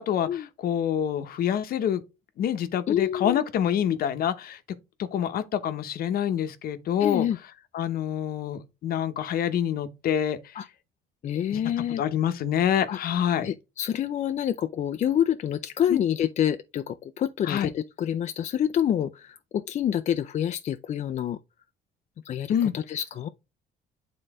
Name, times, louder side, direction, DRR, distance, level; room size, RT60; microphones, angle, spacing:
voice 1, 0.0-2.0 2.4-4.6 5.0-7.3 7.7-10.4 11.5-11.6 12.0-13.5 15.9-16.0 17.4-17.7 22.5-22.7, left 9 dB, 60° left, 0.9 m, -26 dB
voice 2, 2.9-3.4 7.0-7.4 10.6-10.7 11.2-12.0 12.9-13.0 13.4-21.4 22.3-23.3, left 10 dB, 45° left, 0.4 m, -27 dB
8.9 x 3.9 x 3.6 m
cardioid pair, 110°, 17 cm